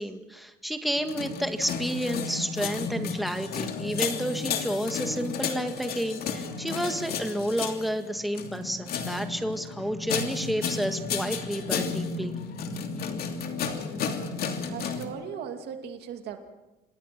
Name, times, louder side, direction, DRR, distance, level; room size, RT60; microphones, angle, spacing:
voice 1, 0.0-12.3, equal, ahead, 6 dB, 1.9 m, -30 dB
sound 1, 0.9-15.1, left 5 dB, 65° left, 2.9 m, -33 dB
voice 2, 14.7-16.4, right 7 dB, 75° right, 6 dB, 2.5 m, -37 dB
27.0 x 20.5 x 6.1 m, 1.1 s
cardioid pair, 110°, 17 cm